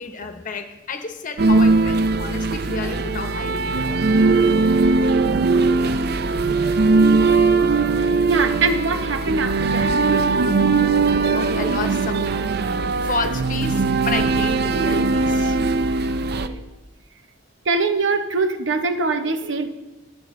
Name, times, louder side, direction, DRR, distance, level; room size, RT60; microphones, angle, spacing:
voice 1, 0.0-4.0 11.2-12.5 13.0-15.6, left 3 dB, 45° left, 7 dB, 1.0 m, -31 dB
sound 1, 1.4-16.5, right 3 dB, 55° right, 0.5 m, -19 dB
voice 2, 8.0-9.9 15.8-15.9 16.4-16.6 17.7-19.7, right 3 dB, 75° right, 8 dB, 0.9 m, -23 dB
21.0 x 7.0 x 3.2 m, 1.1 s
head